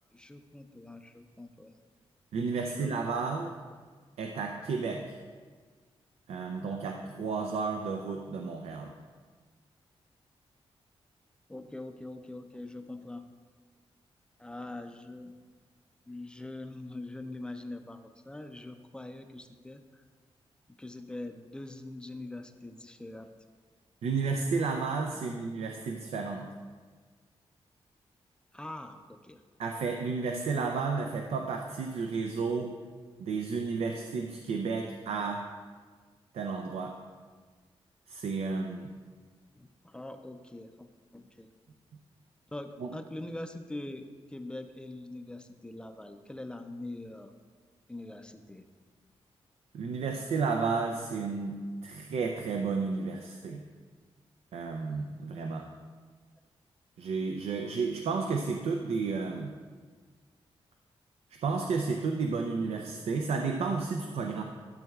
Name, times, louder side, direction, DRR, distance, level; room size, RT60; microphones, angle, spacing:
voice 1, 0.1-1.8 2.6-2.9 7.5-7.6 11.5-13.3 14.4-15.3 16.1-20.0 20.7-23.3 25.3-25.4 28.5-29.4 39.5-40.9 41.1-41.5 42.5-47.3 47.9-48.6, left 2 dB, 10° left, 7 dB, 0.4 m, -43 dB
voice 2, 2.3-3.5 4.2-5.2 6.3-8.9 24.0-26.5 29.6-32.7 33.2-35.4 36.3-36.9 38.1-38.9 42.8-42.9 49.7-51.6 51.8-53.6 54.5-55.7 57.0-59.5 61.3-64.4, right 4 dB, 90° right, 3 dB, 0.6 m, -32 dB
12.0 x 7.3 x 2.4 m, 1.5 s
wide cardioid pair, 145°, 10 cm